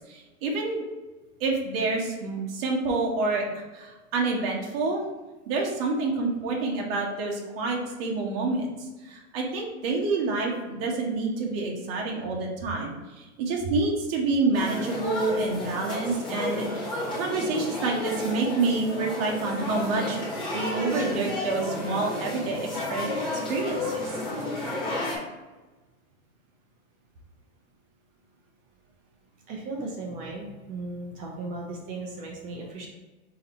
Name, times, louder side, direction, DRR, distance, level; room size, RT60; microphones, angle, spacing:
voice 1, 0.1-0.8 1.4-3.4 3.7-5.1 5.5-8.7 9.0-20.2 20.5-23.1 23.5-24.1, right 3 dB, 45° right, -1 dB, 1.0 m, -28 dB
sound 1, 14.5-25.2, left 2 dB, 10° left, 0.8 m, -32 dB
voice 2, 29.5-32.9, right 2 dB, 20° right, -1 dB, 0.5 m, -36 dB
3.9 x 2.9 x 4.0 m, 1.2 s
supercardioid pair, 150°, 41 cm